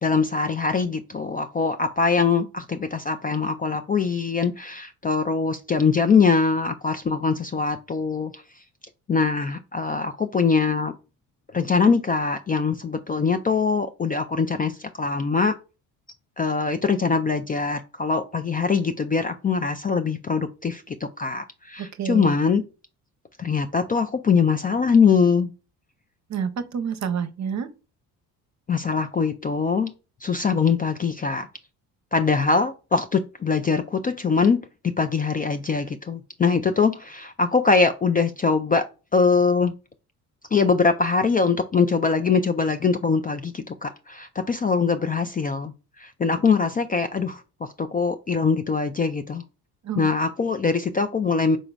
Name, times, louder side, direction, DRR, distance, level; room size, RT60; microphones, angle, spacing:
voice 1, 0.0-8.4 9.1-10.9 11.5-15.5 16.4-22.6 23.4-25.5 28.7-29.9 30.2-31.5 32.1-38.9 39.1-39.7 40.5-49.4 50.0-51.6, left 5 dB, 20° left, 0.3 m, -22 dB
voice 2, 21.8-22.4 26.3-27.7 49.8-50.1, right 7 dB, 40° right, 0.8 m, -28 dB
5.1 x 3.8 x 2.2 m
supercardioid pair, 70°, 42 cm